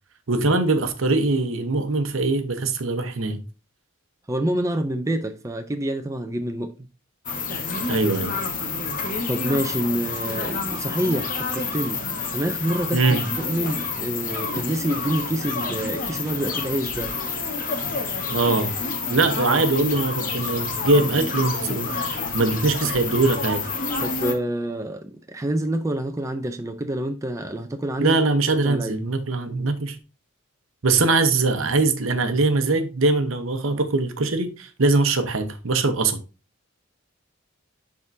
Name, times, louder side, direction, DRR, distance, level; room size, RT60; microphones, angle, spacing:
voice 1, 0.3-3.4 7.9-8.3 12.9-13.2 18.3-18.7 19.1-23.6 28.0-30.0 30.8-36.2, right 3 dB, 70° right, 0.9 m, -22 dB
voice 2, 4.3-6.7 9.3-12.0 12.3-17.1 19.4-19.6 24.0-28.2 28.6-29.0, right 1 dB, 15° right, 0.4 m, -27 dB
sound 1, 7.3-24.3, left 4 dB, 40° left, 1.0 m, -28 dB
10.5 x 3.6 x 2.6 m
head